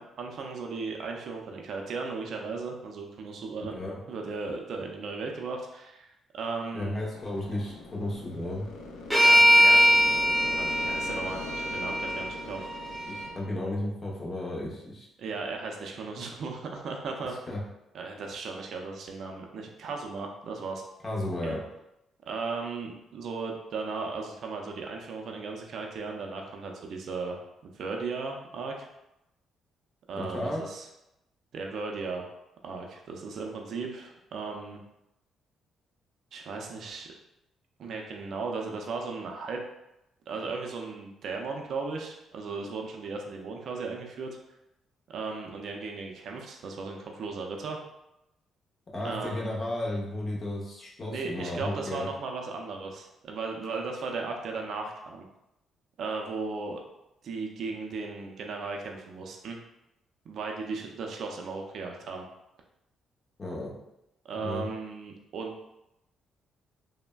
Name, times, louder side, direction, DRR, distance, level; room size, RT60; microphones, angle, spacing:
voice 1, 0.0-3.7 4.1-7.0 9.2-9.8 10.5-12.7 15.2-17.3 17.9-20.8 21.4-21.5 22.3-28.9 30.1-30.9 31.5-32.3 32.6-34.8 36.3-37.1 37.8-39.6 40.3-44.4 45.1-47.8 49.0-49.5 51.1-55.3 56.0-56.8 57.2-59.6 60.3-62.3 64.3-65.7, right 4 dB, 60° right, 1 dB, 0.4 m, -36 dB
voice 2, 6.7-8.7 13.1-15.1 17.5-17.6 21.0-21.6 30.2-30.6 48.9-52.1 63.4-63.7 64.4-64.6, left 1 dB, 35° left, -3 dB, 0.7 m, -33 dB
sound 1, 7.1-13.4, left 2 dB, 85° left, 0.3 m, -41 dB
sound 2, 9.1-13.3, equal, ahead, 0.8 m, -22 dB
3.2 x 2.1 x 2.2 m, 0.88 s
cardioid pair, 105°, 0 cm